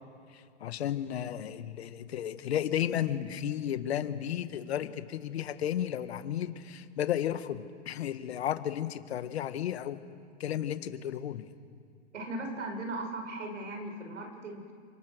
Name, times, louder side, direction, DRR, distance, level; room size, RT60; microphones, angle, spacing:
voice 1, 0.3-10.0 10.4-11.5, left 10 dB, 60° left, 10 dB, 1.7 m, -33 dB
voice 2, 12.1-14.7, right 2 dB, 85° right, 4 dB, 6.1 m, -38 dB
28.5 x 24.5 x 6.4 m, 2.3 s
hypercardioid pair, 155°, 36 cm